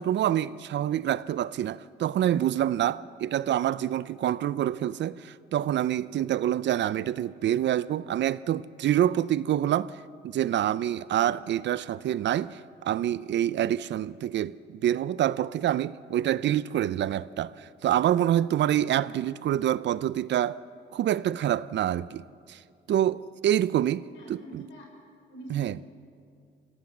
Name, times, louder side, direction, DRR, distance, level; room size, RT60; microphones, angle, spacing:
voice 1, 0.0-9.9 10.2-20.6 20.9-22.2 22.5-22.6 22.9-24.6 25.5-25.8, right 11 dB, 65° right, 0.6 m, -26 dB
voice 2, 24.1-24.9 25.3-25.9, equal, 80° left, 6.1 m, -46 dB
25.5 x 17.5 x 7.4 m
cardioid pair, 90°, 20 cm